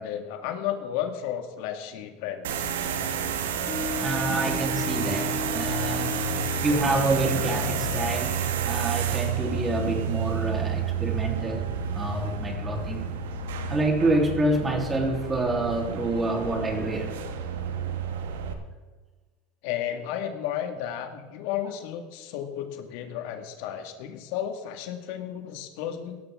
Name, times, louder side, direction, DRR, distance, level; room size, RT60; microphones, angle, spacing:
voice 1, 0.0-2.7 19.6-26.2, left 10 dB, 70° left, 6 dB, 1.8 m, -33 dB
sound 1, 2.4-18.5, right 6 dB, 90° right, 1.7 m, -30 dB
sound 2, 3.6-6.6, left 5 dB, 45° left, 2.1 m, -35 dB
voice 2, 4.0-13.1 13.7-17.1, right 2 dB, 20° right, 2 dB, 3.4 m, -27 dB
17.0 x 13.5 x 3.7 m, 1.3 s
supercardioid pair, 105°, 0 cm